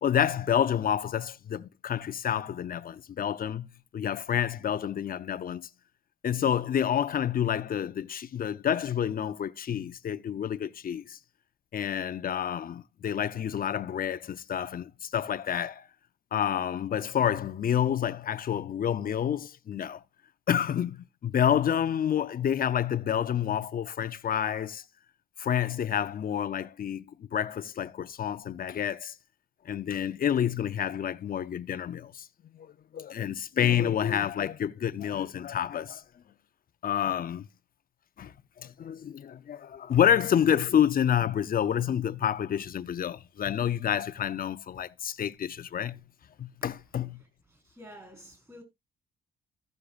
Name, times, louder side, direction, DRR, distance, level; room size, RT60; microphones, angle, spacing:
voice 1, 0.0-5.7 6.2-11.2 11.7-15.9 16.3-20.0 20.5-24.8 25.4-29.1 29.6-32.3 32.5-36.0 36.8-37.5 38.2-46.0 46.4-47.2, left 9 dB, 45° left, 0.7 m, -29 dB
voice 2, 47.5-48.6, equal, 10° right, 4.7 m, -49 dB
15.0 x 6.5 x 2.5 m
cardioid pair, 90°, 20 cm